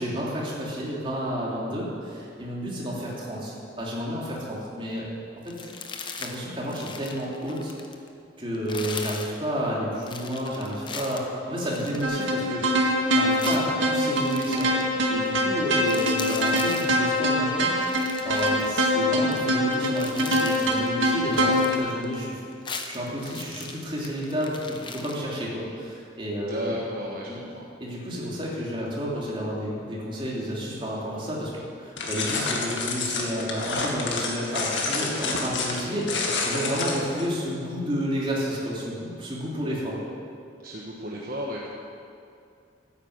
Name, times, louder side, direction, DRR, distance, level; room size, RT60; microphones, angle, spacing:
voice 1, 0.0-5.1 5.6-5.7 6.2-7.7 8.4-14.7 15.1-17.7 18.2-22.4 22.9-26.8 27.3-27.4 27.8-40.0, equal, 25° right, -5 dB, 3.2 m, -31 dB
sound 1, 5.5-6.4 6.6-8.1 8.5-9.4 10.0-12.6 13.4-14.9 15.3-15.4 15.7-17.0 17.7-19.4 19.7-20.9 21.2-22.3 22.5-25.2, left 5 dB, 25° left, 0.9 m, -39 dB
sound 2, 12.0-21.8, equal, 90° right, 1.9 m, -24 dB
voice 2, 26.4-27.7 40.6-41.7, left 1 dB, 50° right, -3 dB, 1.4 m, -34 dB
sound 3, 32.0-37.3, left 3 dB, 75° left, 2.1 m, -29 dB
13.5 x 9.7 x 8.2 m, 2.5 s
head